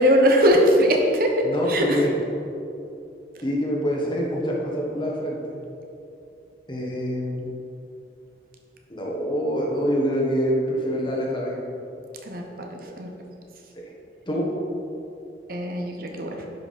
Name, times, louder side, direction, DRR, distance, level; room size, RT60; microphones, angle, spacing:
voice 1, 0.0-2.0 12.2-13.1 15.5-16.4, equal, 55° right, 1 dB, 1.0 m, -21 dB
voice 2, 1.4-2.1 3.4-5.6 6.7-7.5 8.9-11.6 14.3-14.5, equal, 25° left, -2 dB, 1.4 m, -25 dB
10.5 x 5.8 x 4.2 m, 2.7 s
head